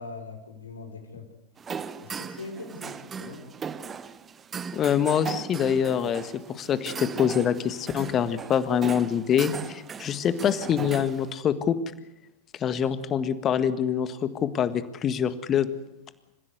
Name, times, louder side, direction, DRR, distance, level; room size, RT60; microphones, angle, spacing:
voice 1, 0.0-1.3 2.0-3.5 10.5-10.9, left 3 dB, 70° left, 4 dB, 4.0 m, -41 dB
sound 1, 1.6-11.3, right 6 dB, 20° right, 1.1 m, -38 dB
voice 2, 4.7-11.8 12.6-15.7, left 8 dB, 30° left, 12 dB, 1.7 m, -25 dB
28.5 x 16.0 x 8.1 m, 0.89 s
figure-of-eight pair, 90°, 0 cm